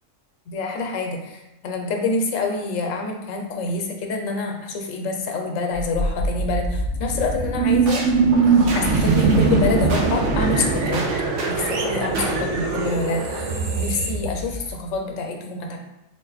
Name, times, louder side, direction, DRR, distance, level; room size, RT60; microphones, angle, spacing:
voice 1, 0.5-8.1 8.7-11.1 11.5-13.5 13.8-15.8, left 3 dB, 75° left, 3 dB, 1.0 m, -26 dB
sound 1, 5.7-14.9, right 4 dB, 65° right, 0.9 m, -21 dB
3.6 x 2.5 x 3.9 m, 0.92 s
omnidirectional pair, 1.4 m